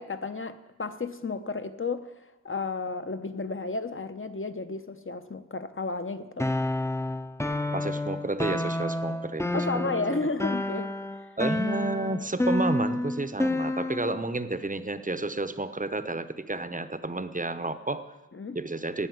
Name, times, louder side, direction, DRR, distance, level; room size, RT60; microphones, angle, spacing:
voice 1, 0.0-6.5 9.5-11.3 18.3-18.6, left 3 dB, 40° left, 10 dB, 0.9 m, -33 dB
sound 1, 6.4-14.3, left 1 dB, 10° left, 0.6 m, -29 dB
voice 2, 7.7-9.5 10.1-10.2 11.4-18.1 18.5-19.1, right 2 dB, 25° right, 12 dB, 0.7 m, -31 dB
16.5 x 5.6 x 9.4 m, 1.1 s
wide cardioid pair, 55°, 30 cm